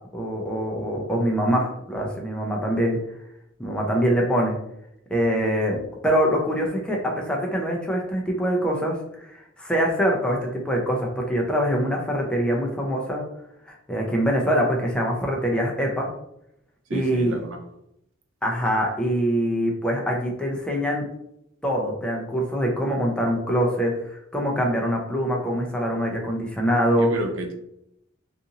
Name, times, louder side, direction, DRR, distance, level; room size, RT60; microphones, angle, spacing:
voice 1, 0.1-3.0 3.6-4.6 5.1-9.0 9.3-13.2 13.7-16.1 16.9-17.4 18.4-21.1 21.6-27.1, equal, 5° left, -1 dB, 0.5 m, -24 dB
voice 2, 16.9-17.6 27.0-27.5, right 1 dB, 70° right, 3 dB, 0.5 m, -31 dB
2.6 x 2.5 x 2.7 m, 0.79 s
head